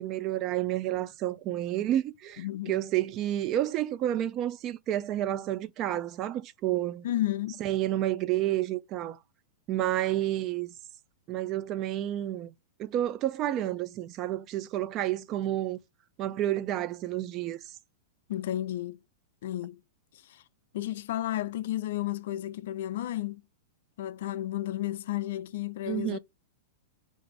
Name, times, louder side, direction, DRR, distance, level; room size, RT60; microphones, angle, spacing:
voice 1, 0.0-7.0 7.6-9.2 9.7-10.7 11.3-12.5 12.8-15.8 16.2-17.6 25.9-26.2, right 13 dB, 30° right, 0.3 m, -30 dB
voice 2, 2.4-2.8 7.0-7.6 18.3-19.0 19.4-19.8 20.7-23.4 24.0-26.2, left 13 dB, 65° left, 0.3 m, -32 dB
3.8 x 2.5 x 4.6 m
supercardioid pair, 150°, 0 cm